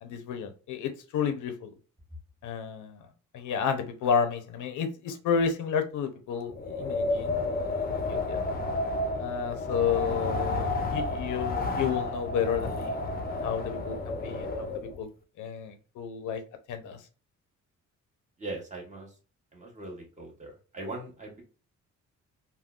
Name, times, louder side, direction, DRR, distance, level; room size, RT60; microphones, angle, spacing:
voice 1, 0.0-1.7 2.4-3.1 3.3-7.4 7.8-8.4 9.2-13.0 13.4-15.1 15.4-16.4 16.7-17.0, left 7 dB, 80° left, 8 dB, 0.7 m, -31 dB
Wind, 6.5-15.0, left 2 dB, 30° left, 0.7 m, -31 dB
voice 2, 18.4-19.1 19.5-21.4, right 2 dB, 25° right, -1 dB, 1.5 m, -40 dB
3.6 x 2.2 x 2.3 m, 0.35 s
cardioid pair, 90°, 30 cm